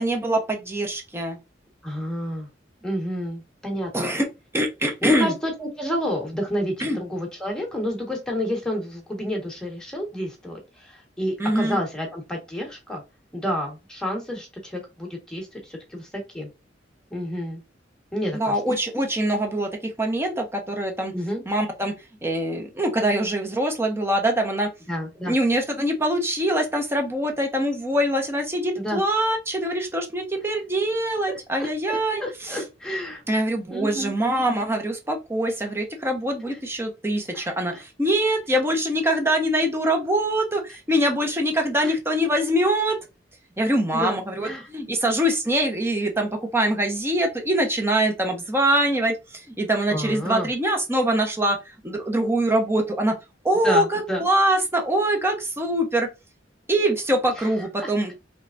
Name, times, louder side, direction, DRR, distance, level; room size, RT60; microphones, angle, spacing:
voice 1, 0.0-1.4 3.9-4.3 4.5-5.3 6.8-7.0 11.4-11.8 18.3-21.1 21.5-21.9 22.2-24.7 25.3-32.2 32.5-32.6 33.3-43.0 43.6-51.6 51.8-53.1 53.4-56.1 56.7-58.1, right 1 dB, 15° right, 2 dB, 1.0 m, -23 dB
voice 2, 1.8-2.5 2.8-4.1 5.0-13.0 13.3-16.1 16.3-16.5 17.1-17.6 18.1-18.6 21.1-21.4 24.9-25.3 28.8-29.0 31.6-33.2 33.7-34.1 36.4-36.6 37.3-37.8 41.8-41.9 43.9-44.7 49.9-50.5 53.6-54.2 57.4-57.5 57.8-57.9, equal, 5° left, -1 dB, 1.5 m, -30 dB
4.8 x 3.4 x 2.6 m, 0.25 s
head